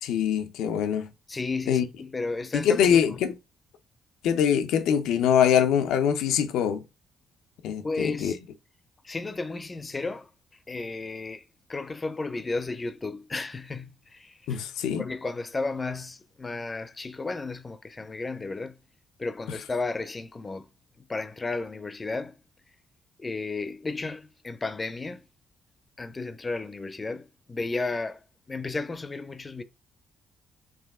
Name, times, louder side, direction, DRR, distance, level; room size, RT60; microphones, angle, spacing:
voice 1, 0.0-1.1 1.7-1.9 2.5-3.3 4.2-6.8 7.6-8.3 14.5-15.0, left 8 dB, 90° left, 0.6 m, -23 dB
voice 2, 1.3-3.2 7.8-8.4 9.0-10.3 10.7-11.4 11.7-14.6 15.0-18.8 19.2-20.7 21.0-22.4 23.2-25.2 26.0-28.2 28.5-29.6, left 3 dB, 25° left, 0.6 m, -33 dB
4.9 x 2.8 x 3.6 m
cardioid pair, 90°, 0 cm